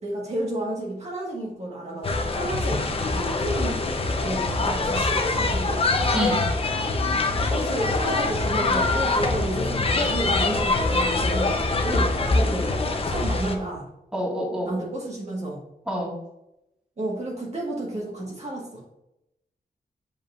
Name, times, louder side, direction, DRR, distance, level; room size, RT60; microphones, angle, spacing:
voice 1, 0.0-3.8 4.2-5.8 7.5-11.6 11.8-12.7 13.1-13.9 14.6-15.6 17.0-18.9, right 1 dB, 45° right, -3 dB, 1.5 m, -31 dB
sound 1, 2.0-13.6, left 3 dB, 35° left, 0.7 m, -24 dB
voice 2, 6.1-6.4 14.1-14.7 15.9-16.1, equal, 5° right, -4 dB, 1.8 m, -27 dB
7.3 x 5.3 x 2.5 m, 0.85 s
wide cardioid pair, 140°, 16 cm